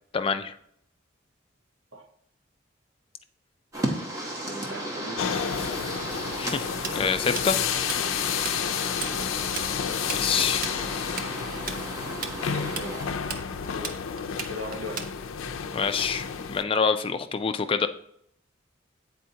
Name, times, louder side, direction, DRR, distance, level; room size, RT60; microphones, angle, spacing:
voice 1, 0.1-0.5 6.3-7.6 10.1-10.7 15.7-17.9, left 5 dB, 25° left, 9 dB, 0.3 m, -26 dB
sound 1, 3.7-13.1, right 1 dB, 15° right, 1.0 m, -35 dB
voice 2, 4.4-5.2 9.1-9.4 12.4-13.0 13.7-13.9 14.5-15.0, left 1 dB, 85° right, 4 dB, 1.0 m, -38 dB
sound 2, 5.2-16.6, left 7 dB, 90° left, 0.4 m, -30 dB
Tools, 6.8-8.6 8.8-9.1 9.4-15.5, right 5 dB, 45° right, 0.5 m, -35 dB
8.6 x 4.3 x 2.8 m, 0.70 s
head